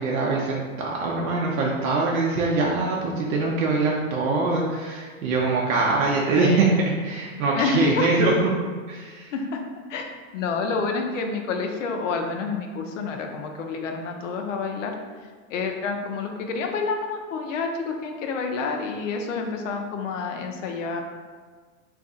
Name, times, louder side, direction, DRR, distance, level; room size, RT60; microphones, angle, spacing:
voice 1, 0.0-8.5 8.9-9.3, right 3 dB, 85° right, -3 dB, 0.6 m, -23 dB
voice 2, 6.2-6.6 7.5-8.1 9.3-9.6 9.9-14.9 15.5-21.0, left 4 dB, 65° left, 3 dB, 0.5 m, -28 dB
2.6 x 2.4 x 3.8 m, 1.5 s
supercardioid pair, 165°, 41 cm